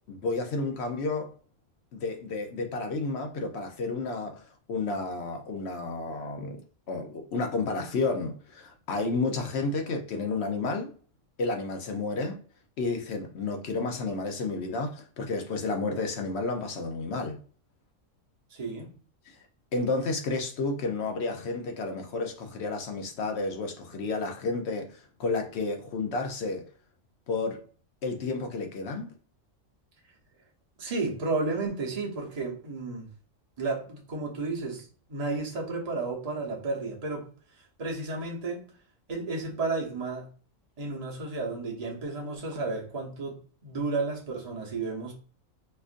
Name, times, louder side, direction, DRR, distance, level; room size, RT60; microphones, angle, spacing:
voice 1, 0.1-1.3 1.9-6.6 6.9-10.9 11.4-12.4 12.8-17.4 19.3-19.4 19.7-26.7 27.3-27.6 28.0-29.1, left 3 dB, 60° left, 0.9 m, -31 dB
voice 2, 18.5-19.0 30.8-33.1 33.6-37.3 37.8-38.7 39.1-40.3 40.8-43.4 43.6-45.1, right 3 dB, 35° right, 0.9 m, -32 dB
4.4 x 2.4 x 2.5 m
omnidirectional pair, 1.3 m